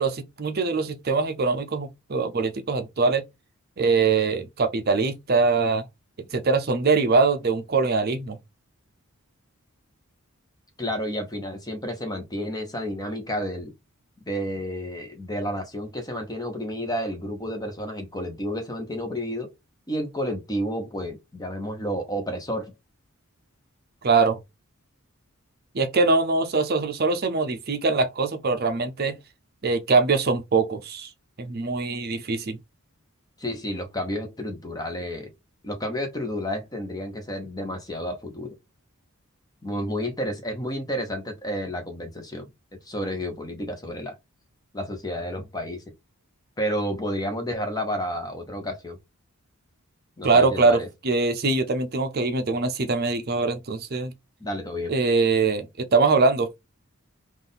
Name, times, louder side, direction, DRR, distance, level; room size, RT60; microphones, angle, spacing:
voice 1, 0.0-3.2 3.8-5.9 6.3-8.4 24.0-24.4 25.7-29.2 29.6-31.1 31.4-32.6 50.2-54.1 54.9-56.5, right 4 dB, 45° right, 0.6 m, -23 dB
voice 2, 10.8-13.7 14.3-19.5 19.9-22.7 33.4-35.3 35.6-38.6 39.6-42.5 42.8-44.2 44.7-45.8 46.6-49.0 50.2-50.9 54.4-54.9, equal, 15° left, 0.8 m, -31 dB
3.6 x 2.5 x 3.9 m
head